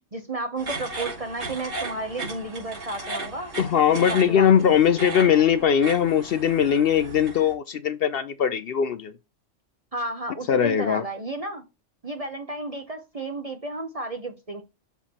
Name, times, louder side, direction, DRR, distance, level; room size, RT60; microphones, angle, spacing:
voice 1, 0.1-3.5 3.9-4.8 9.9-11.6 12.0-14.6, right 2 dB, 35° right, 0.8 m, -32 dB
sound 1, 0.6-7.5, right 2 dB, 80° right, 4.0 m, -36 dB
voice 2, 3.6-9.1 10.5-11.0, left 8 dB, 60° left, 0.6 m, -20 dB
7.0 x 4.4 x 4.3 m
omnidirectional pair, 1.3 m